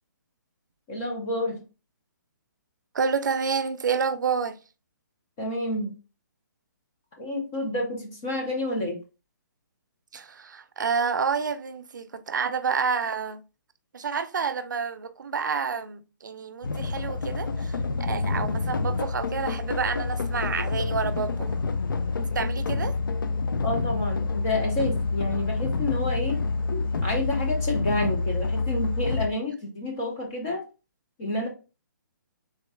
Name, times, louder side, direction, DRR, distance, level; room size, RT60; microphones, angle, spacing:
voice 1, 0.9-1.6 5.4-5.9 7.2-9.0 23.6-26.4 26.7-30.6 31.2-31.5, left 2 dB, 10° left, 0.3 m, -29 dB
voice 2, 2.9-4.6 10.1-13.4 13.9-21.5 22.2-23.0, right 5 dB, 65° right, 0.5 m, -29 dB
sound 1, 16.6-29.3, left 3 dB, 90° left, 0.6 m, -28 dB
3.6 x 3.1 x 3.2 m
hypercardioid pair, 175°, 11 cm